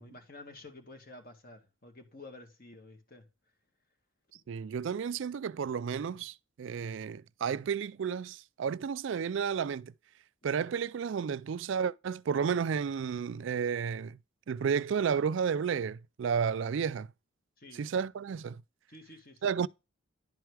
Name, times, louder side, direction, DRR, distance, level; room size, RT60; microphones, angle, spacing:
voice 1, 0.0-3.3 4.3-4.4 17.6-17.8 18.9-19.7, left 2 dB, 45° left, 2.0 m, -51 dB
voice 2, 4.5-9.9 10.4-14.2 14.5-17.1 17.7-18.6 19.4-19.7, right 6 dB, 65° right, 0.3 m, -32 dB
11.0 x 4.6 x 4.7 m
head